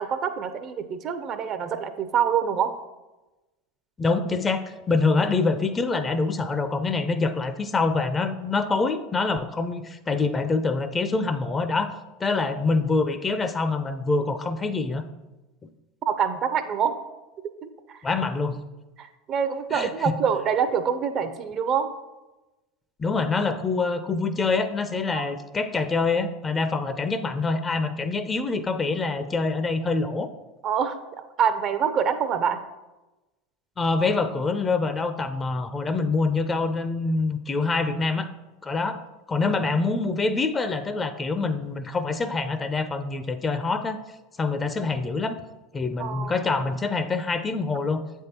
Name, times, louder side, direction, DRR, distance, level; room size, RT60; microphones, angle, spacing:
voice 1, 0.0-2.8 16.0-17.0 17.6-18.0 19.0-21.9 25.1-25.2 30.6-32.6 46.0-46.3, right 7 dB, 45° right, 10 dB, 0.6 m, -26 dB
voice 2, 4.0-11.9 12.2-15.0 18.0-18.6 19.7-20.1 23.0-30.3 33.8-38.3 38.6-39.0 39.3-44.0 44.4-45.4 45.7-48.0, left 3 dB, 25° left, 10 dB, 0.5 m, -25 dB
7.6 x 3.6 x 4.3 m, 1.1 s
hypercardioid pair, 85°, 0 cm